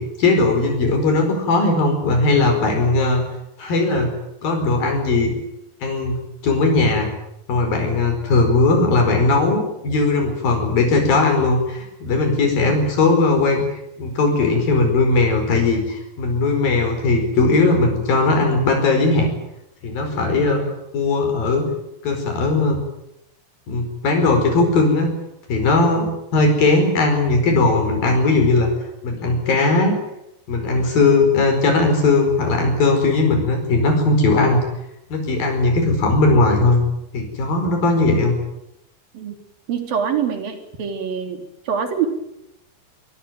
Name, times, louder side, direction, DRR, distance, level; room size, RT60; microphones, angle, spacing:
voice 1, 0.0-3.2 3.6-4.1 4.4-5.3 5.8-7.1 7.5-13.7 14.0-19.3 19.8-20.6 20.9-21.7 22.0-22.8 23.7-25.1 25.5-28.7 29.0-30.0 30.5-34.6 35.1-36.8 37.1-38.3, left 3 dB, 80° left, 4 dB, 6.6 m, -18 dB
voice 2, 39.7-41.4 41.7-42.1, right 7 dB, 80° right, 6 dB, 5.0 m, -24 dB
23.5 x 23.0 x 9.3 m, 0.85 s
omnidirectional pair, 4.1 m